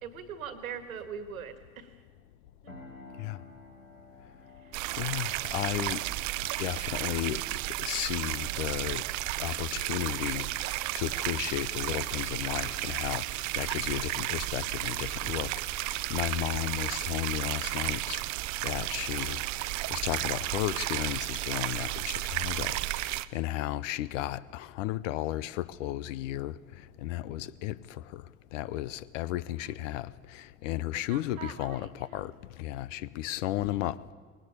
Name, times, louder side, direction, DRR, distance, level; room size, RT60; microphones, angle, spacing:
voice 1, 0.0-2.0 2.6-2.7 4.6-4.8 29.6-29.8 30.9-32.3, right 7 dB, 75° right, 1.8 m, -42 dB
sound 1, 2.7-12.4, left 2 dB, 90° left, 4.1 m, -55 dB
sound 2, 4.7-23.2, right 18 dB, 45° right, 0.7 m, -33 dB
voice 2, 5.0-6.0 6.6-7.4 7.8-9.0 9.4-10.5 10.9-15.5 15.8-18.2 18.6-19.4 19.9-26.5 27.0-27.8 28.1-28.2 28.5-32.3 32.6-34.0, left 14 dB, 60° left, 0.7 m, -34 dB
20.5 x 18.5 x 8.5 m
figure-of-eight pair, 75°, 42 cm